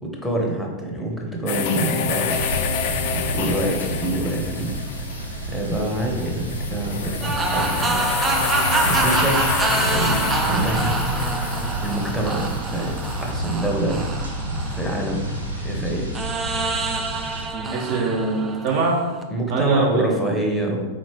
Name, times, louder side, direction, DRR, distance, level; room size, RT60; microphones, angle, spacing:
voice 1, 0.0-2.8 3.1-4.7 5.5-8.0 8.8-10.9 11.2-12.9 13.2-14.1 14.7-15.3 15.6-16.1 19.3-21.0, right 1 dB, 5° left, -1 dB, 0.9 m, -26 dB
sound 1, 1.5-13.3, left 7 dB, 50° left, 0.4 m, -28 dB
sound 2, 2.2-17.5, equal, 85° right, 0.8 m, -29 dB
sound 3, 7.2-15.5 16.1-19.2, right 3 dB, 20° right, 0.4 m, -26 dB
voice 2, 17.5-19.0 19.5-20.4, right 3 dB, 45° right, -2 dB, 1.1 m, -23 dB
4.2 x 3.9 x 3.1 m, 1.2 s
figure-of-eight pair, 90°, 0 cm